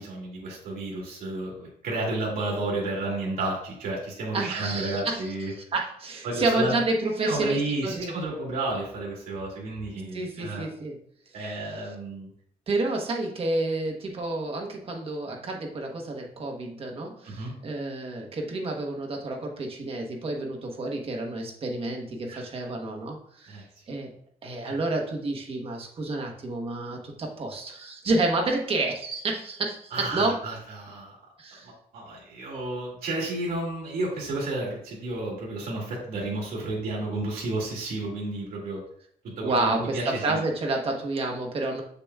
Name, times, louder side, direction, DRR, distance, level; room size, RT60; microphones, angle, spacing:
voice 1, 0.0-5.5 6.2-6.8 7.2-10.6 11.3-12.3 17.2-17.5 22.3-22.7 23.5-23.6 24.6-24.8 29.9-31.2 31.6-38.8 39.4-40.4, right 2 dB, 70° right, -4 dB, 2.3 m, -32 dB
voice 2, 4.3-5.2 5.5-8.1 10.1-11.0 12.7-24.1 24.4-30.4 31.4-31.7 39.4-41.8, right 2 dB, 40° right, 1 dB, 1.2 m, -29 dB
6.9 x 6.8 x 2.3 m, 0.65 s
cardioid pair, 155°, 15 cm